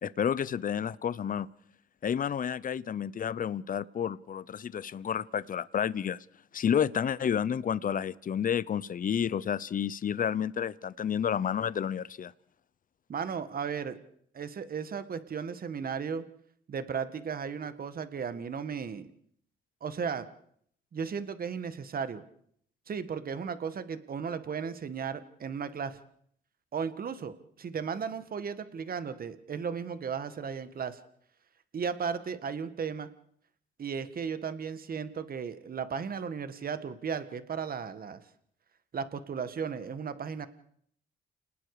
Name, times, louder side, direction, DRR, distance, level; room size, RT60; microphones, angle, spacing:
voice 1, 0.0-1.5 2.0-6.2 6.5-12.3, left 8 dB, 45° left, 19 dB, 0.8 m, -30 dB
voice 2, 13.1-14.0 14.3-16.2 16.7-19.1 19.8-20.3 20.9-22.2 22.9-26.0 26.7-31.0 31.7-33.1 33.8-38.2 38.9-40.5, right 6 dB, 50° right, 12 dB, 1.8 m, -35 dB
29.5 x 19.5 x 5.0 m, 0.65 s
cardioid pair, 90°, 20 cm